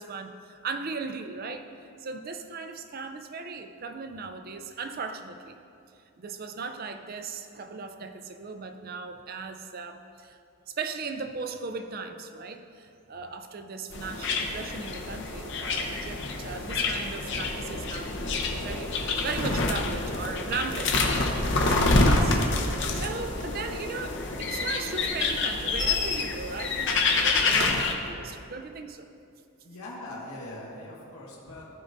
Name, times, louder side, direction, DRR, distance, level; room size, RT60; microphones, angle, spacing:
voice 1, 0.0-1.7 2.0-5.6 6.2-10.4 10.7-21.0 21.6-22.5 22.9-29.1, right 4 dB, 40° right, 7 dB, 0.4 m, -37 dB
sound 1, 13.9-27.9, left 3 dB, 55° left, 0.8 m, -27 dB
Bark, 18.1-26.1, equal, 5° right, 1.1 m, -43 dB
voice 2, 29.6-31.7, left 1 dB, 75° left, -5 dB, 1.8 m, -41 dB
15.0 x 5.1 x 2.6 m, 2.6 s
head